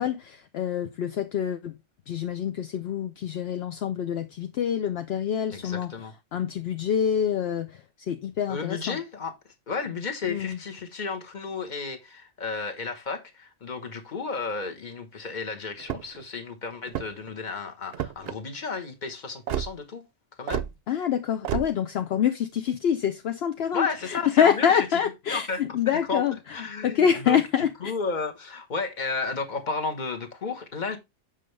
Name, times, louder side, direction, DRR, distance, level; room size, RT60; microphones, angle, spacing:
voice 1, 0.0-1.7 2.1-5.9 6.3-9.0 10.3-10.6 20.9-26.4 26.8-27.7, left 8 dB, 65° left, 0.8 m, -26 dB
voice 2, 5.5-6.1 8.5-20.0 20.4-20.6 23.7-25.0 25.3-25.6 26.1-26.2 26.5-31.0, left 4 dB, 40° left, 1.2 m, -33 dB
sound 1, 15.8-16.2 16.8-17.3 17.9-18.4 19.5-19.7 20.5-20.7 21.4-21.7, right 10 dB, 65° right, 0.7 m, -30 dB
7.5 x 5.3 x 3.2 m
omnidirectional pair, 1.2 m